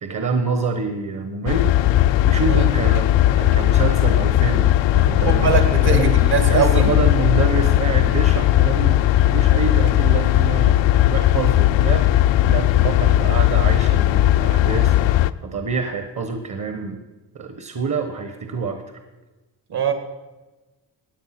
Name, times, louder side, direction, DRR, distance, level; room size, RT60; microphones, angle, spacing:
voice 1, 0.0-1.7 2.2-15.0 15.4-17.0 17.3-18.8, right 4 dB, 40° right, 7 dB, 1.2 m, -27 dB
sound 1, 1.5-15.3, left 14 dB, 85° left, 0.6 m, -17 dB
voice 2, 5.1-6.9 19.7-19.9, right 6 dB, 60° right, 7 dB, 2.2 m, -22 dB
16.5 x 9.9 x 5.9 m, 1.2 s
wide cardioid pair, 150°, 44 cm